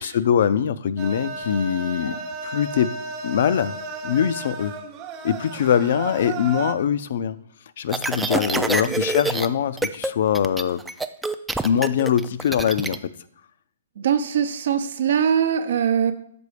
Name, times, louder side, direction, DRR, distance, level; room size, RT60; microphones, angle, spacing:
voice 1, 0.0-2.2 2.4-3.0 3.2-3.8 4.0-4.8 5.2-7.4 7.8-10.8 11.6-13.1, left 8 dB, 65° left, 15 dB, 0.4 m, -22 dB
sound 1, 1.0-6.7, right 4 dB, 30° right, 0.7 m, -34 dB
sound 2, 7.9-9.5 9.8-10.1 10.4-13.0, right 2 dB, 5° right, 0.3 m, -26 dB
voice 2, 14.0-16.1, right 8 dB, 65° right, 9 dB, 0.7 m, -22 dB
6.9 x 4.0 x 4.9 m, 0.68 s
hypercardioid pair, 140°, 0 cm